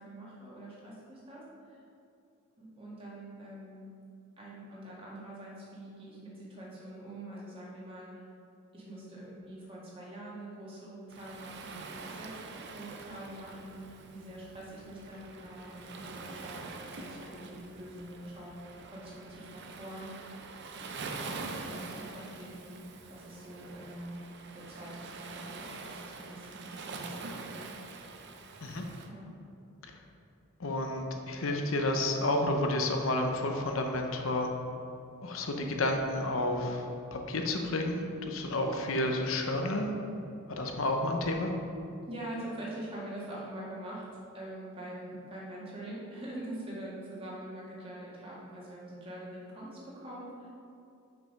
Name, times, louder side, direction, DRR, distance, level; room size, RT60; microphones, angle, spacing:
voice 1, 0.0-1.4 1.7-1.8 2.6-3.9 4.4-8.3 8.7-13.8 14.1-20.1 21.1-24.2 24.5-27.6 29.1-29.3 42.0-44.0 44.3-50.5, right 1 dB, 25° right, -6 dB, 1.8 m, -44 dB
Waves surf, 11.1-29.1, right 3 dB, 55° right, 0.6 m, -45 dB
voice 2, 30.6-34.5 35.2-39.9 40.5-41.5, left 1 dB, 70° left, 3 dB, 0.7 m, -31 dB
6.0 x 5.5 x 5.4 m, 2.6 s
head